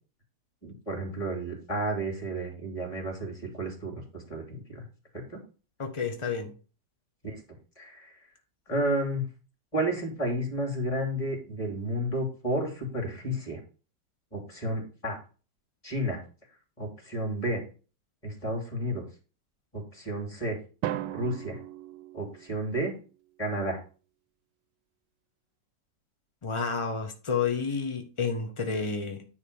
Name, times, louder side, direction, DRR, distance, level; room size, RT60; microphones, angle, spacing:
voice 1, 0.6-4.8 5.1-5.4 7.2-7.4 7.8-8.1 8.7-9.3 9.7-13.6 14.3-15.2 15.8-16.2 16.8-17.6 18.2-19.0 19.7-20.6 21.1-21.6 22.1-22.9 23.4-23.8, right 1 dB, 20° left, 3.0 m, -31 dB
voice 2, 5.8-6.5 26.4-29.3, left 5 dB, 40° left, 0.4 m, -30 dB
Drum, 20.8-22.8, right 12 dB, 80° right, 1.2 m, -36 dB
9.8 x 3.3 x 7.0 m
omnidirectional pair, 2.0 m